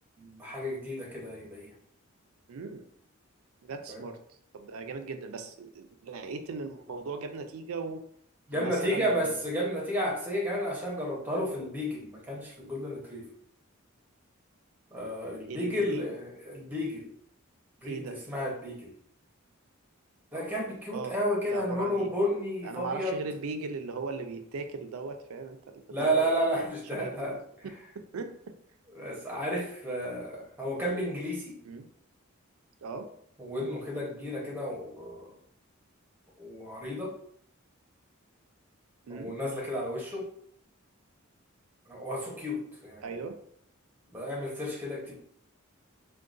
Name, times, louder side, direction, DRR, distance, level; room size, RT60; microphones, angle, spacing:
voice 1, 0.2-1.7 3.9-4.0 8.5-13.3 14.9-17.1 17.8-18.9 20.3-23.2 25.9-27.4 28.9-31.6 33.4-35.3 36.4-37.2 39.1-40.3 41.9-43.2 44.1-45.1, equal, 10° right, -3 dB, 0.8 m, -32 dB
voice 2, 2.5-2.9 3.6-4.2 4.5-8.0 8.5-9.4 15.5-16.1 17.8-18.2 20.9-21.2 21.5-22.1 22.6-25.6 26.0-26.3 26.9-27.4 27.6-27.7 28.1-28.3 31.7-31.9 32.8-33.1 39.1-39.4 43.0-43.4, right 4 dB, 85° right, 7 dB, 0.4 m, -38 dB
3.7 x 2.2 x 2.4 m, 0.67 s
head